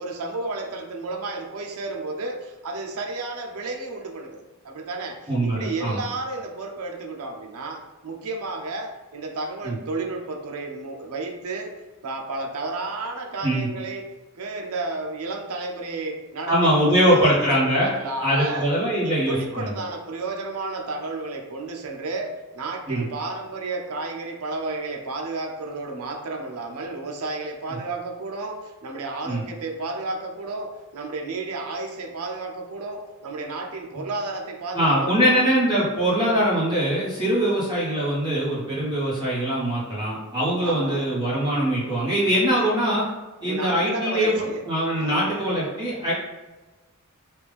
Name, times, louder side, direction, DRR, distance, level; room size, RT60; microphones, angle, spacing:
voice 1, 0.0-18.7 19.0-35.4 40.6-41.1 43.4-44.6 45.0-45.3, right 3 dB, 75° right, 3 dB, 0.6 m, -32 dB
voice 2, 5.3-6.0 9.6-9.7 13.4-13.7 16.5-17.9 18.2-19.7 22.9-23.0 29.2-29.4 34.7-43.0 43.4-46.1, equal, 20° right, -8 dB, 1.1 m, -22 dB
3.4 x 2.4 x 3.3 m, 1.2 s
head